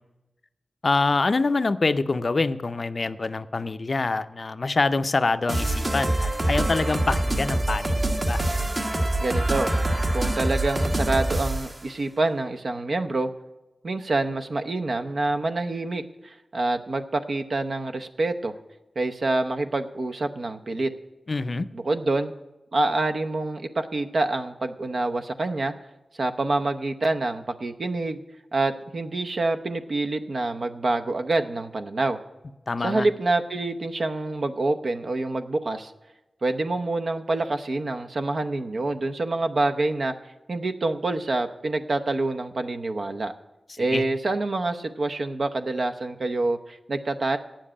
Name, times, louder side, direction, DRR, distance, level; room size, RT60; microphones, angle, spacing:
voice 1, 0.8-8.4 21.3-21.7 32.7-33.1 43.9-44.0, left 3 dB, 50° left, 13 dB, 0.4 m, -25 dB
sound 1, 5.5-11.8, right 1 dB, 35° right, 1.2 m, -25 dB
voice 2, 9.2-9.7 10.1-13.3 13.8-18.5 19.0-20.9 21.7-22.3 22.7-25.7 26.2-28.2 28.5-32.2 32.8-35.9 36.4-40.1 40.5-43.3 43.8-47.4, right 2 dB, 60° right, 7 dB, 0.7 m, -26 dB
9.0 x 7.2 x 8.6 m, 1.0 s
wide cardioid pair, 105°, 0 cm